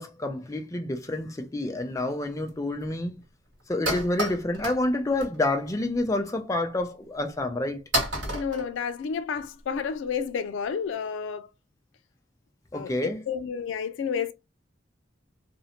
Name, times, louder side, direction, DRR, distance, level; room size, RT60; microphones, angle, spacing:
voice 1, 0.0-3.1 3.7-7.8 12.7-13.2, left 2 dB, 15° left, 0.4 m, -28 dB
sound 1, 1.8-1.9 2.5-2.6 2.8-3.0 3.2-3.3 3.6-4.8 5.1-5.5 5.9-6.1 6.8-6.9 7.5-7.6 7.9-9.4, right 1 dB, 70° right, 1.3 m, -30 dB
voice 2, 8.3-11.5 12.7-14.3, left 6 dB, 80° left, 0.3 m, -31 dB
2.5 x 2.1 x 2.8 m
head